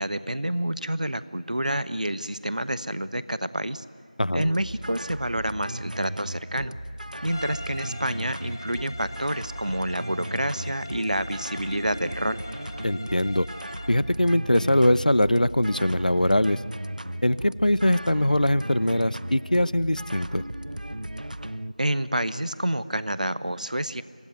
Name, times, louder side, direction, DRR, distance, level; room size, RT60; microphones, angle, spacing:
voice 1, 0.0-3.8 4.3-6.7 7.2-12.4 21.8-24.0, right 1 dB, 65° right, 14 dB, 1.1 m, -28 dB
voice 2, 4.2-4.5 12.8-13.5 13.9-16.6 17.2-20.4, left 1 dB, 75° left, 18 dB, 0.8 m, -22 dB
sound 1, 4.4-21.7, right 1 dB, 85° right, 0.6 m, -36 dB
Bowed string instrument, 7.2-14.0, left 1 dB, 30° left, 1.2 m, -42 dB
25.0 x 19.0 x 9.6 m, 2.1 s
figure-of-eight pair, 175°, 4 cm